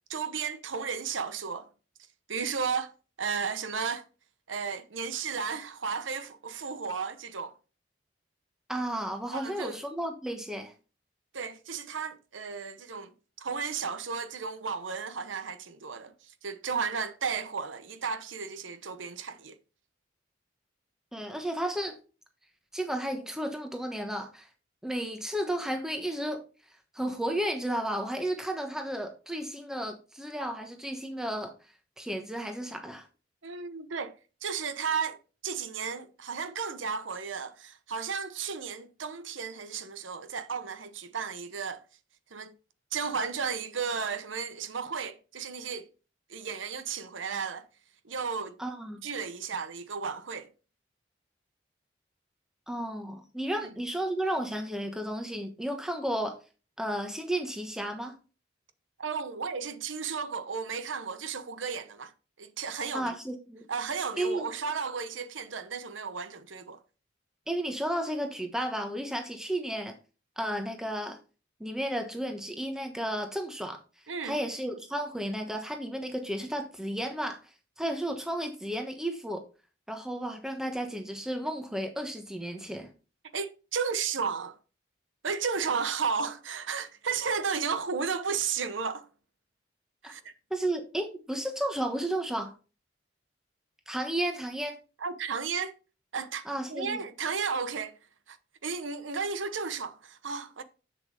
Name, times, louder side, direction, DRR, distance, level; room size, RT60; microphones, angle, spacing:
voice 1, 0.1-1.7 2.3-4.1 4.5-7.6 9.3-9.8 11.3-13.1 13.4-19.6 33.4-41.8 42.3-42.5 42.9-45.9 46.3-47.7 48.0-48.6 49.0-50.5 53.5-53.6 59.0-62.1 62.4-63.1 63.7-66.8 74.1-74.4 83.3-84.6 85.2-89.1 90.0-90.3 95.0-95.7 96.1-98.0 98.3-98.4 98.6-100.6, right 5 dB, 80° right, 0.9 m, -34 dB
voice 2, 8.7-10.7 21.1-22.0 22.7-24.5 24.8-26.4 26.9-31.5 32.0-33.1 48.6-49.0 52.7-56.4 56.8-58.1 62.9-63.6 64.2-64.5 67.5-70.0 70.4-71.2 71.6-73.8 74.2-77.4 77.8-79.4 79.9-82.9 90.0-90.1 90.5-92.5 93.9-94.8 96.5-97.0, right 1 dB, 5° right, 1.2 m, -33 dB
7.7 x 7.0 x 3.4 m
head